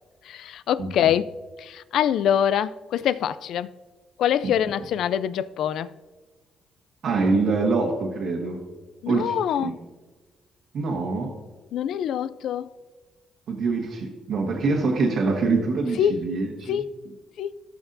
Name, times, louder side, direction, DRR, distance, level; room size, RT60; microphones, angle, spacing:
voice 1, 0.3-1.3 1.6-3.7 4.2-5.9 9.0-9.7 11.7-12.7 16.0-16.2 16.7-16.8 17.4-17.5, left 9 dB, 75° left, 0.3 m, -24 dB
voice 2, 7.0-8.6 9.1-9.7 10.7-11.3 13.5-16.8, right 3 dB, 70° right, 1.4 m, -25 dB
15.0 x 6.1 x 2.6 m
cardioid pair, 90°, 0 cm